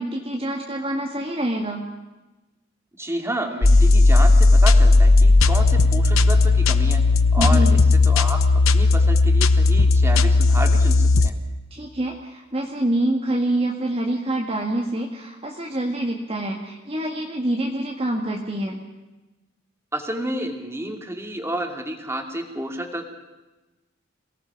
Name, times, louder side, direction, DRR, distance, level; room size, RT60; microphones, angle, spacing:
voice 1, 0.0-1.8 7.4-7.8 11.7-18.8, right 1 dB, 30° right, 0 dB, 1.8 m, -26 dB
voice 2, 3.0-7.0 7.3-8.4 8.7-11.3 19.9-23.1, right 1 dB, 15° right, 3 dB, 2.5 m, -30 dB
sound 1, 3.6-11.3, left 3 dB, 85° left, 0.9 m, -15 dB
27.0 x 18.0 x 5.9 m, 1.1 s
head